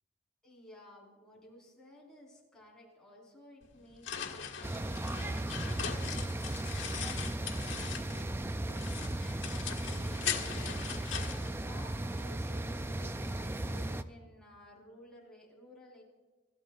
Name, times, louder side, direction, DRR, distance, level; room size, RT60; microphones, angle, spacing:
voice 1, 0.4-16.0, left 1 dB, 5° left, -5 dB, 4.6 m, -55 dB
sound 1, 3.6-8.4 8.7-12.2, left 8 dB, 80° left, 1.7 m, -40 dB
sound 2, 4.6-14.0, right 1 dB, 10° right, 0.4 m, -36 dB
26.5 x 13.5 x 2.5 m, 1.2 s
head